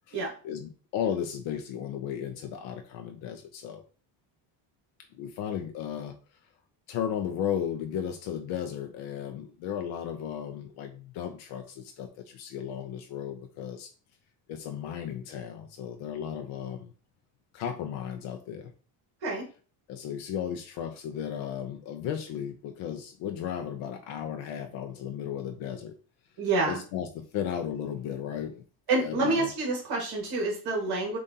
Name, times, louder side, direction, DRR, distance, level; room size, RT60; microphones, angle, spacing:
voice 1, 0.1-3.8 5.1-6.1 6.9-13.9 14.5-16.9 17.5-18.7 19.9-26.0 26.7-28.6 29.0-29.5, left 9 dB, 90° left, 5 dB, 0.7 m, -35 dB
voice 2, 26.4-26.8 28.9-31.2, right 3 dB, 55° right, -2 dB, 1.7 m, -28 dB
7.3 x 2.6 x 2.8 m, 0.38 s
cardioid pair, 160°, 46 cm